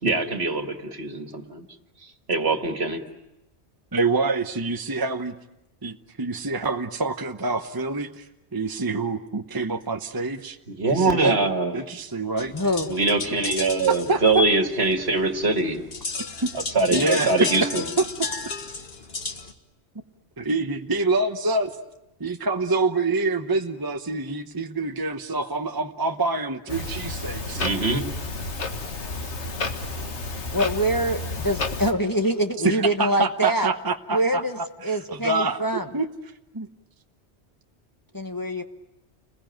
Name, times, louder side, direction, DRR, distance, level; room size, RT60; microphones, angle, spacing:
voice 1, 0.0-1.6 2.3-3.0 10.7-11.8 12.9-15.8 16.5-17.9 27.6-28.1, right 3 dB, 65° right, 5 dB, 2.2 m, -23 dB
voice 2, 3.9-5.3 5.8-8.3 8.5-10.6 10.9-11.4 11.7-12.5 13.9-14.4 16.4-16.5 16.9-18.1 18.4-18.5 19.2-19.3 20.4-21.7 22.2-27.7 32.6-35.6 35.9-36.1 36.5-36.7, right 3 dB, 20° right, 6 dB, 1.0 m, -26 dB
sound 1, 12.4-19.5, left 4 dB, 60° left, 1.9 m, -34 dB
voice 3, 12.5-12.9 30.5-33.7 34.1-35.9 38.1-38.6, right 1 dB, 20° left, 4 dB, 1.2 m, -24 dB
Clock, 26.7-31.9, left 3 dB, 85° left, 1.9 m, -31 dB
30.0 x 21.5 x 9.1 m, 0.93 s
omnidirectional pair, 1.1 m